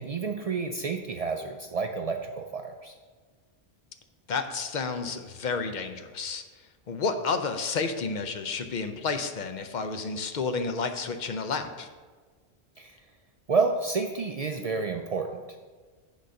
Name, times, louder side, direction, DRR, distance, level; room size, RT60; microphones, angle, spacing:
voice 1, 0.0-2.9 12.8-13.0 13.5-15.4, right 4 dB, 55° right, 3 dB, 0.4 m, -29 dB
voice 2, 4.3-6.4 6.9-11.9, left 4 dB, 55° left, 7 dB, 0.6 m, -31 dB
6.6 x 3.9 x 6.4 m, 1.4 s
omnidirectional pair, 1.1 m